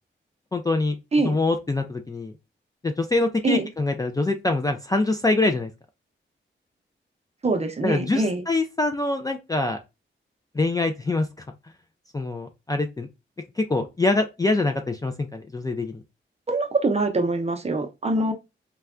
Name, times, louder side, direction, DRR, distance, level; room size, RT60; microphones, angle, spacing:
voice 1, 0.5-0.9 1.2-2.3 2.8-5.7 7.8-9.8 10.5-11.3 12.1-13.1 13.6-15.9, left 2 dB, 20° left, 0.3 m, -24 dB
voice 2, 7.4-8.4 16.5-18.3, right 2 dB, 30° right, 0.6 m, -24 dB
3.2 x 2.2 x 2.3 m
cardioid pair, 75°, 20 cm